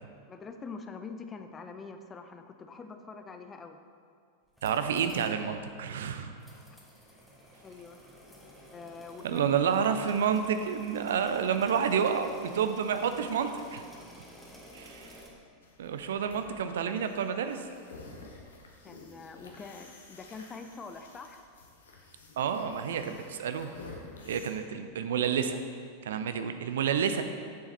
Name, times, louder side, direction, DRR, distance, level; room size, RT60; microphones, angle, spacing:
voice 1, 0.3-3.8 6.7-6.8 7.1-7.2 7.6-8.0 8.7-9.7 18.8-21.4, left 4 dB, 20° left, 7 dB, 0.6 m, -45 dB
sound 1, 4.4-5.4 5.7-5.8 6.4-15.3, equal, ahead, 1.5 m, -52 dB
voice 2, 4.6-6.3 9.2-13.8 14.7-15.2 15.8-17.6 22.4-23.7 24.3-25.6 26.0-27.2, right 7 dB, 60° right, 8 dB, 0.5 m, -29 dB
sound 2, 15.6-24.5, left 3 dB, 65° left, 1.2 m, -51 dB
8.5 x 7.2 x 4.1 m, 2.2 s
figure-of-eight pair, 90°, 0 cm